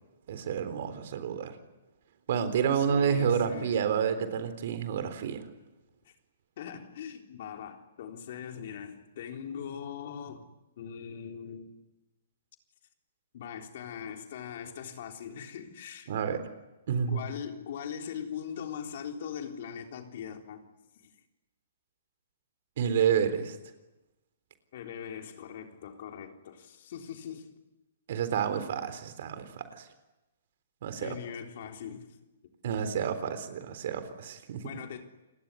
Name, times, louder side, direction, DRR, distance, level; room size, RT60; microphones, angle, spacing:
voice 1, 0.3-1.6 2.3-5.5 16.1-16.4 16.9-17.2 22.8-23.6 28.1-29.9 30.8-31.2 32.6-34.6, right 7 dB, 60° right, 3.8 m, -29 dB
voice 2, 2.7-3.9 6.1-6.2 6.6-10.5 10.8-11.8 13.3-16.1 17.1-20.6 21.0-21.1 24.7-27.5 31.0-32.2 34.6-35.0, left 8 dB, 55° left, 3.7 m, -41 dB
28.5 x 20.5 x 9.7 m
hypercardioid pair, 125°, 0 cm